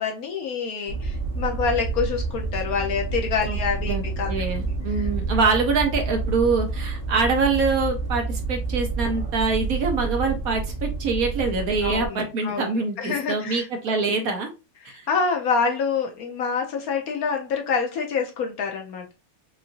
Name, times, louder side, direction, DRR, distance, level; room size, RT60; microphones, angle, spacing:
voice 1, 0.0-4.3 11.8-12.7 13.0-13.6 15.1-19.1, left 5 dB, 65° left, 2 dB, 1.0 m, -26 dB
sound 1, 0.9-12.1, right 4 dB, 80° right, 1.7 m, -29 dB
voice 2, 4.3-14.5 14.8-15.1, right 4 dB, 60° right, 4 dB, 1.1 m, -24 dB
5.7 x 2.5 x 2.5 m, 0.29 s
omnidirectional pair, 1.9 m